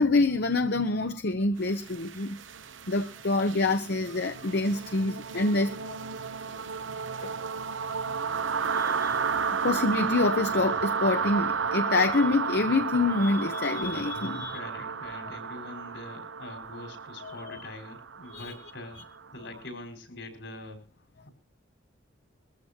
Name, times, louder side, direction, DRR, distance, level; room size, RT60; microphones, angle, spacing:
voice 1, 0.0-2.4 2.9-6.0 7.2-7.3 8.7-9.2 9.6-14.6 17.2-17.6 18.3-18.5 18.9-19.0, left 3 dB, 60° left, 0.9 m, -26 dB
sound 1, 1.7-19.5, right 5 dB, 85° right, 0.8 m, -33 dB
voice 2, 14.2-20.8 21.3-21.4, left 2 dB, 75° left, 5.3 m, -44 dB
22.5 x 14.5 x 2.9 m
head